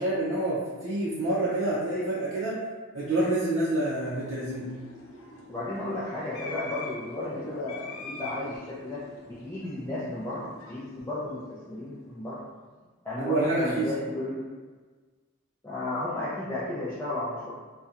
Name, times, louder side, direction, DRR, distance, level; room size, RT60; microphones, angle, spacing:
voice 1, 0.0-2.6 2.9-4.7 13.2-13.9, right 2 dB, 75° right, -8 dB, 0.5 m, -27 dB
sound 1, 3.7-12.2, left 3 dB, 80° left, 0.4 m, -45 dB
voice 2, 5.5-9.0 9.3-12.4 13.0-14.4 15.6-17.5, left 1 dB, 10° left, -11 dB, 0.3 m, -33 dB
2.7 x 2.2 x 2.4 m, 1.4 s
head